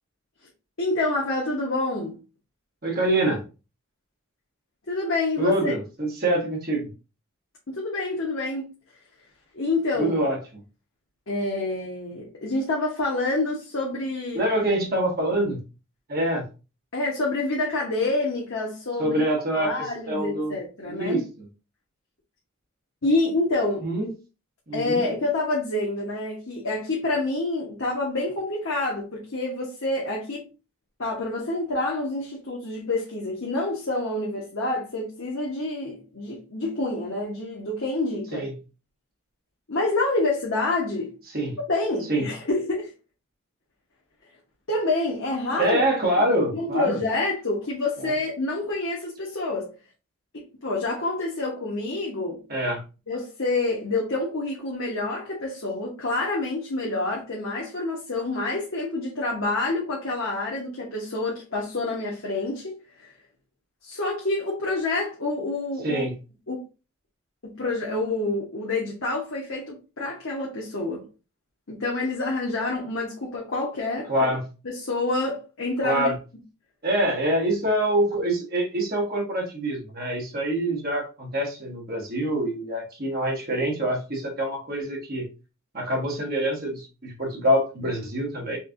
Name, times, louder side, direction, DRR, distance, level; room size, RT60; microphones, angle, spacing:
voice 1, 0.8-2.2 4.9-5.7 7.7-8.7 9.5-10.2 11.3-14.5 16.9-19.2 19.6-21.2 23.0-23.9 24.7-30.4 31.0-38.5 39.7-41.1 41.7-42.9 44.7-45.8 46.5-49.7 50.3-52.4 53.1-62.8 63.8-66.1 66.5-66.6 67.4-71.1 71.7-74.3 74.6-76.1, left 2 dB, 60° left, 1.1 m, -27 dB
voice 2, 2.8-3.4 5.4-6.9 10.0-10.4 14.3-15.6 16.1-16.4 19.0-20.5 20.8-21.2 23.8-24.1 24.7-25.0 38.3-38.5 41.3-41.6 42.1-42.3 45.6-47.0 52.5-52.8 65.8-66.1 74.1-74.5 75.8-76.2 76.8-85.2 85.7-88.6, right 1 dB, 45° right, 1.5 m, -25 dB
4.3 x 3.2 x 2.5 m
head